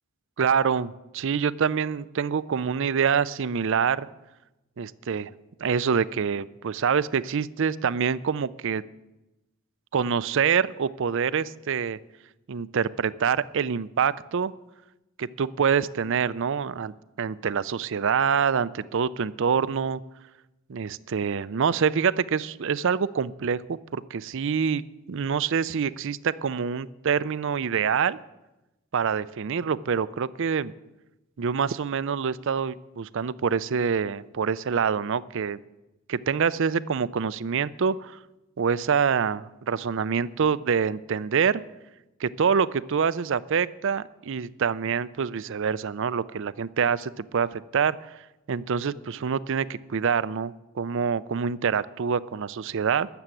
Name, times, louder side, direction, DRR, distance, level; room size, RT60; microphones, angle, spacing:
voice 1, 0.4-4.1 4.8-5.3 5.6-8.8 9.9-12.0 12.5-14.5 15.2-20.0 20.7-28.2 28.9-30.7 31.4-35.6 36.1-38.2 38.6-41.6 42.2-48.0 48.5-53.1, right 6 dB, 60° right, 18 dB, 0.5 m, -26 dB
13.0 x 7.1 x 9.0 m, 0.99 s
head